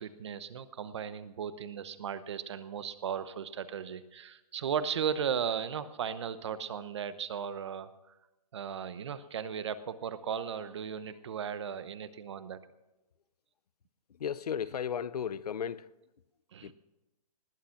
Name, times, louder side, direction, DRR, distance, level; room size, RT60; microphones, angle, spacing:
voice 1, 0.0-7.9 8.5-12.6 16.5-16.7, right 7 dB, 45° right, 0.9 m, -36 dB
voice 2, 14.1-15.9 16.6-16.7, left 8 dB, 80° left, 0.7 m, -35 dB
19.5 x 8.9 x 5.8 m
hypercardioid pair, 170°, 20 cm